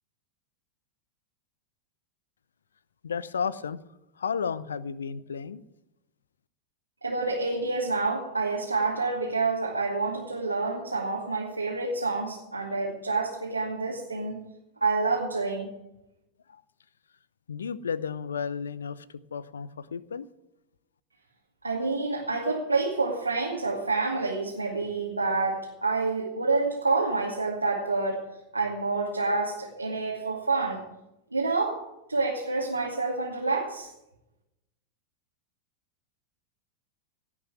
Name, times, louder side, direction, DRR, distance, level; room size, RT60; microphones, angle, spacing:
voice 1, 3.0-3.8 4.2-5.6 16.5-16.6 17.5-20.2, left 6 dB, 70° left, 18 dB, 0.7 m, -33 dB
voice 2, 7.0-14.4 14.8-15.7 21.6-28.2 28.5-30.9 31.3-33.9, right 3 dB, 85° right, -2 dB, 2.3 m, -28 dB
18.0 x 6.1 x 9.6 m, 0.90 s
figure-of-eight pair, 90°, 0 cm